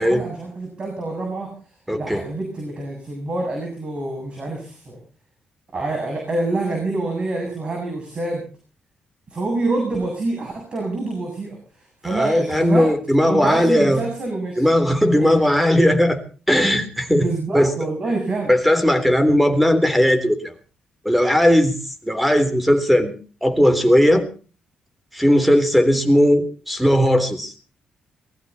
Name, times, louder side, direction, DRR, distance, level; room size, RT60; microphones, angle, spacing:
voice 1, 0.0-1.5 1.9-5.0 5.7-8.4 9.3-11.6 12.0-12.9 13.3-14.7 15.1-15.5 17.1-18.6, right 2 dB, 40° right, 1 dB, 7.7 m, -26 dB
voice 2, 1.9-2.2 12.0-14.0 14.6-16.2 16.5-17.3 17.5-17.7 18.5-20.5 21.1-21.8 22.0-23.1 23.4-24.3 25.1-27.5, equal, 5° right, 9 dB, 3.5 m, -17 dB
21.0 x 15.0 x 4.2 m, 0.39 s
cardioid pair, 90°, 3 cm